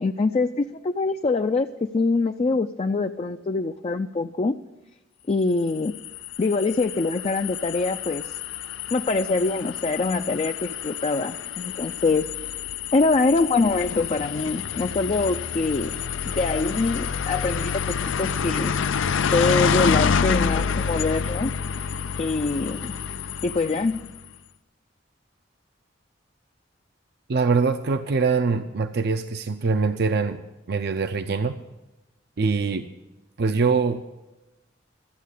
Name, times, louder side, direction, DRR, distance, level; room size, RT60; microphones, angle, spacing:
voice 1, 0.0-4.6 5.3-5.9 6.4-8.4 8.9-12.3 12.9-16.0 16.3-18.7 19.3-21.5 22.2-22.9 23.4-24.1, left 3 dB, 35° left, 6 dB, 0.4 m, -24 dB
sound 1, 5.7-24.2, left 6 dB, 85° left, 0.5 m, -28 dB
voice 2, 27.3-30.4 30.7-31.6 32.4-32.9 33.4-34.0, right 4 dB, 60° right, 9 dB, 0.6 m, -23 dB
13.5 x 8.4 x 8.2 m, 1.0 s
head